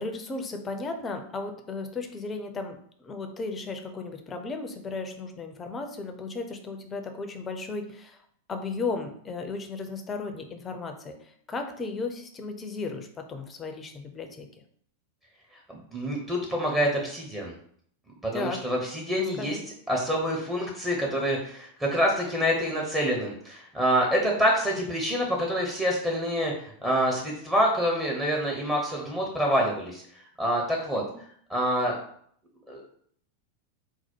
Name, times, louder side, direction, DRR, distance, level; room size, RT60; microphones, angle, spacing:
voice 1, 0.0-8.2 8.5-14.5 18.3-18.6 19.1-19.6 30.9-31.1, left 3 dB, 20° left, 5 dB, 0.6 m, -35 dB
voice 2, 15.7-17.5 18.2-19.6 19.9-30.0 30.4-31.0 31.5-32.0 32.7-32.9, equal, 10° right, -2 dB, 0.9 m, -26 dB
4.0 x 2.2 x 4.4 m, 0.63 s
figure-of-eight pair, 90°, 0 cm